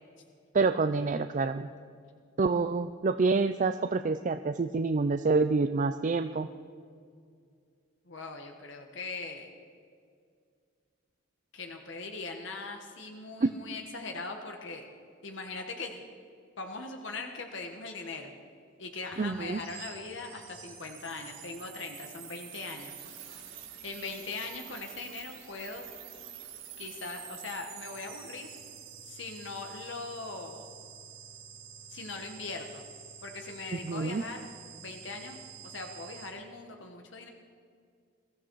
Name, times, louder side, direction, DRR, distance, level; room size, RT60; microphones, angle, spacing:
voice 1, 0.5-1.7 2.4-6.5 13.4-13.5 19.2-19.6 33.8-34.2, right 4 dB, 40° right, 9 dB, 0.4 m, -27 dB
voice 2, 8.1-9.5 11.5-14.9 15.2-16.0 16.6-18.3 18.8-22.9 23.8-26.0 26.8-28.5 29.0-30.7 31.9-32.8 33.2-34.4 34.8-35.4 35.6-37.3, left 3 dB, 65° left, 4 dB, 1.3 m, -40 dB
sound 1, 19.1-36.3, right 8 dB, 80° right, 3.4 m, -48 dB
22.5 x 14.0 x 4.7 m, 2.2 s
head